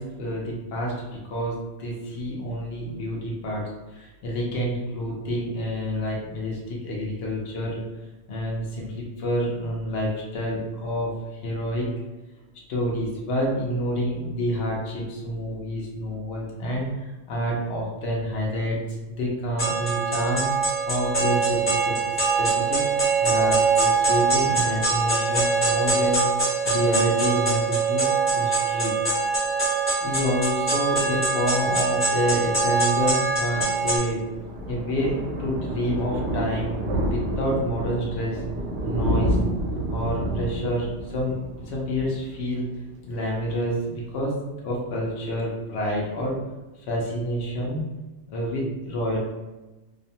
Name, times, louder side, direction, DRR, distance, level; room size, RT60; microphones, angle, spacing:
voice 1, 0.0-3.6 3.9-7.8 8.3-11.1 11.4-11.9 12.7-18.8 19.1-20.5 20.9-22.8 23.2-28.9 30.0-34.2 34.7-36.7 37.1-38.4 38.8-39.4 39.9-42.7 43.1-46.4 46.9-47.8 48.3-49.2, equal, 75° left, -3 dB, 0.9 m, -28 dB
sound 1, 19.6-34.0, right 4 dB, 25° left, 0.7 m, -23 dB
Thunder, 33.5-42.9 43.2-43.5 43.8-43.9 44.1-44.2, right 1 dB, 90° right, 0.9 m, -29 dB
2.6 x 2.1 x 2.7 m, 1.1 s
omnidirectional pair, 1.2 m